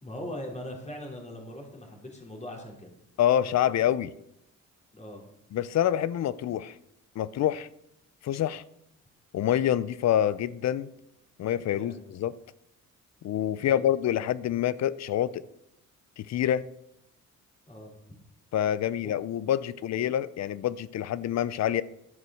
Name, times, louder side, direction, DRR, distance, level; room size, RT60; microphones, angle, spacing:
voice 1, 0.0-3.0 4.9-5.3 11.6-12.0 13.6-13.9 17.7-18.2 19.0-19.1 19.7-19.8, left 1 dB, 20° left, 3.3 m, -41 dB
voice 2, 3.2-4.1 5.5-6.7 7.2-7.7 8.2-8.6 9.3-10.9 11.4-12.3 13.2-15.4 16.2-16.6 18.5-21.8, left 11 dB, 60° left, 0.6 m, -26 dB
11.0 x 7.5 x 6.3 m
cardioid pair, 90°, 30 cm